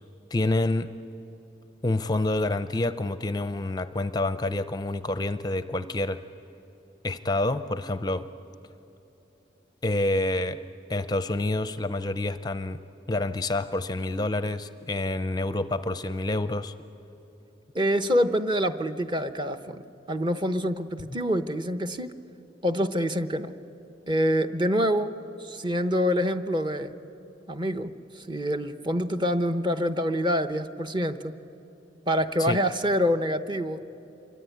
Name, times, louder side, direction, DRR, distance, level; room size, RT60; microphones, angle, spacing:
voice 1, 0.3-0.9 1.8-6.2 7.0-8.3 9.8-10.6 10.9-12.8 13.1-16.7 32.4-32.6, left 2 dB, 20° left, 12 dB, 0.5 m, -27 dB
voice 2, 17.7-19.8 20.1-22.1 22.6-23.5 24.1-26.9 27.5-31.3 32.1-33.8, equal, 25° right, 9 dB, 0.8 m, -26 dB
26.5 x 23.5 x 9.3 m, 3.0 s
head